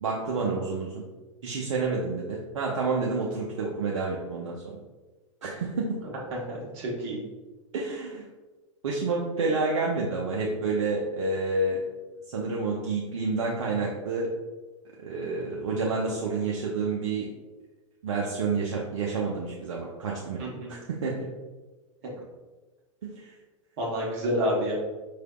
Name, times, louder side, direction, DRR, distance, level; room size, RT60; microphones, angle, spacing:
voice 1, 0.0-1.0 1.4-4.8 5.4-6.0 7.7-8.2 8.8-11.8 12.3-14.3 15.0-17.3 18.0-20.4 20.7-21.3 23.0-23.3, right 3 dB, 65° right, -3 dB, 0.6 m, -29 dB
voice 2, 6.3-7.2 20.4-20.7 23.8-24.7, equal, 50° right, -4 dB, 1.1 m, -29 dB
4.7 x 3.3 x 2.2 m, 1.2 s
figure-of-eight pair, 95°, 17 cm